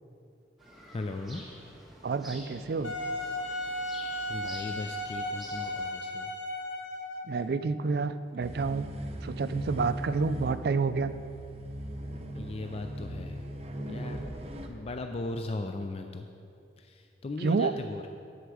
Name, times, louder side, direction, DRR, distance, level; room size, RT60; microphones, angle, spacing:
sound 1, 0.6-5.9, equal, ahead, 1.7 m, -49 dB
voice 1, 0.9-1.5 4.3-6.3 12.3-13.4 13.8-14.2 14.7-16.3 16.8-18.0, left 2 dB, 35° left, 5 dB, 0.4 m, -37 dB
voice 2, 2.0-2.9 7.3-8.9 9.2-11.1 17.4-17.7, right 4 dB, 55° right, 13 dB, 0.4 m, -29 dB
Wind instrument woodwind instrument, 2.8-7.4, left 1 dB, 80° left, 1.1 m, -35 dB
sound 2, 8.4-14.7, equal, 35° right, 0.7 m, -39 dB
8.1 x 8.0 x 6.2 m, 2.5 s
head